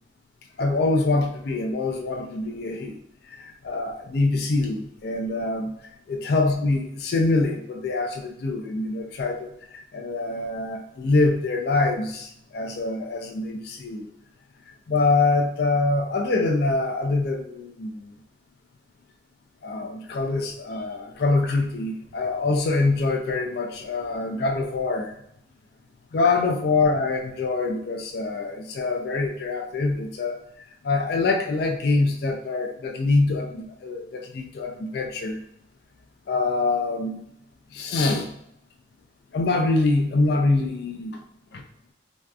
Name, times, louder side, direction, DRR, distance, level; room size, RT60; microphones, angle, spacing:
voice 1, 0.6-3.0 3.4-5.7 6.1-9.5 9.9-14.0 14.9-18.0 19.6-25.1 26.1-30.4 30.8-35.4 36.3-37.2 37.7-38.3 39.3-41.2 41.5-41.6, left 3 dB, 55° left, 2 dB, 0.3 m, -24 dB
2.6 x 2.3 x 2.2 m, 0.75 s
head